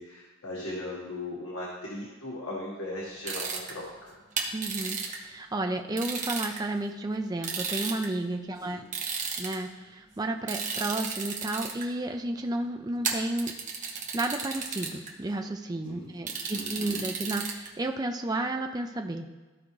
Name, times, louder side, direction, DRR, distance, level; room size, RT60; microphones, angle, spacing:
voice 1, 0.0-4.1 8.6-8.9 15.8-16.1 16.5-17.0, left 1 dB, 85° left, -4 dB, 1.5 m, -38 dB
sound 1, 3.3-3.7 4.4-5.2 6.0-6.6 7.4-8.1 8.9-9.6 10.5-11.8 13.0-15.1 16.3-17.7, right 5 dB, 35° right, 1.1 m, -33 dB
voice 2, 4.5-8.8 9.4-13.5 14.1-19.3, right 2 dB, 20° right, 4 dB, 0.5 m, -32 dB
14.0 x 4.9 x 3.1 m, 1.3 s
head